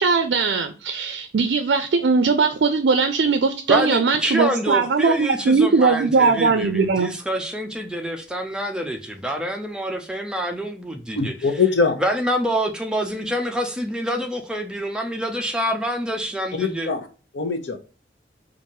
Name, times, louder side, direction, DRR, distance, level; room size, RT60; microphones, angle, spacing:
voice 1, 0.0-7.1, right 4 dB, 75° right, 0.4 m, -19 dB
voice 2, 3.7-11.3 12.0-16.9, equal, 5° right, 0.5 m, -26 dB
voice 3, 11.2-12.0 16.5-17.1 17.3-17.8, left 4 dB, 90° left, 0.7 m, -22 dB
4.6 x 2.5 x 2.6 m
head